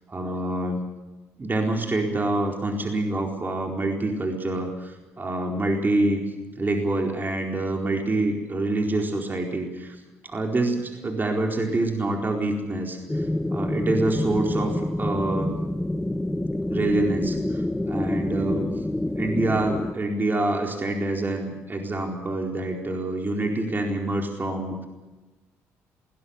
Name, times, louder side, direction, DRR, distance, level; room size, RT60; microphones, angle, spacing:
voice 1, 0.1-0.8 1.4-6.2 6.6-10.0 10.2-15.6 16.7-18.6 19.2-24.9, right 2 dB, 30° right, 2 dB, 4.3 m, -26 dB
sound 1, 13.1-19.9, left 1 dB, 10° left, 0.8 m, -27 dB
21.5 x 17.5 x 8.4 m, 1.1 s
hypercardioid pair, 60°, 7 cm